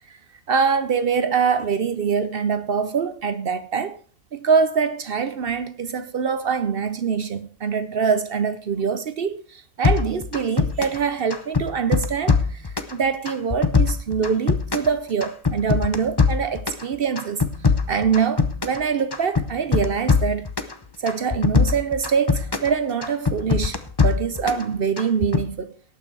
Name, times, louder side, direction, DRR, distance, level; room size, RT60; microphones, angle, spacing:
voice 1, 0.5-4.0 4.3-17.4 17.9-20.5 21.0-25.7, right 6 dB, 60° right, 0.6 m, -24 dB
sound 1, 9.8-11.0 11.3-12.9 13.2-14.9 15.2-16.8 17.1-18.8 19.1-20.7 21.1-22.7 23.0-24.6 25.0-25.4, left 5 dB, 25° left, 0.5 m, -21 dB
18.5 x 6.1 x 4.6 m
omnidirectional pair, 1.7 m